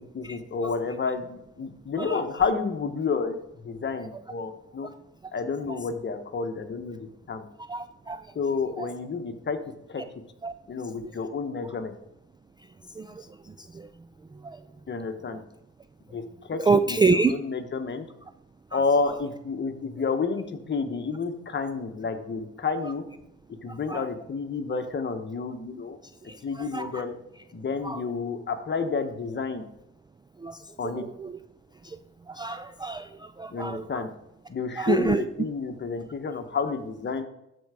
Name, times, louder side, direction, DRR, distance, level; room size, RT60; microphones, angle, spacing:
voice 1, 0.1-3.3 3.6-4.9 5.3-7.4 8.3-9.6 9.9-10.0 10.7-11.9 14.9-15.4 16.1-16.2 16.5-18.1 18.7-23.0 23.6-26.0 26.4-27.1 27.5-29.6 30.8-31.0 33.5-34.1 34.5-37.2, left 4 dB, 35° left, 7 dB, 1.2 m, -30 dB
voice 2, 7.7-8.2 8.8-8.9 10.4-10.5 11.0-11.1 13.0-13.3 13.6-13.9 14.4-14.6 16.7-17.3 18.7-18.8 23.9-24.1 26.3-27.0 27.8-28.0 30.4-30.6 31.0-31.3 31.8-32.0 32.3-34.0 34.8-35.2, right 4 dB, 15° right, 10 dB, 0.3 m, -27 dB
13.0 x 4.7 x 4.9 m, 0.83 s
cardioid pair, 90°, 30 cm